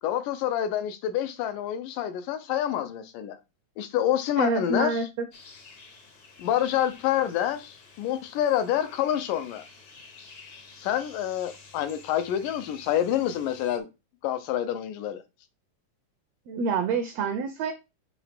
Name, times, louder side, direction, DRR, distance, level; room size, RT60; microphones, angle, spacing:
voice 1, 0.0-3.4 3.8-5.0 6.4-9.7 10.8-13.9 14.2-15.2, left 11 dB, 80° left, 2.5 m, -27 dB
voice 2, 4.4-5.1 16.5-17.7, right 4 dB, 80° right, 1.5 m, -27 dB
sound 1, 5.3-13.8, left 4 dB, 55° left, 1.0 m, -51 dB
8.1 x 3.2 x 5.1 m
omnidirectional pair, 3.7 m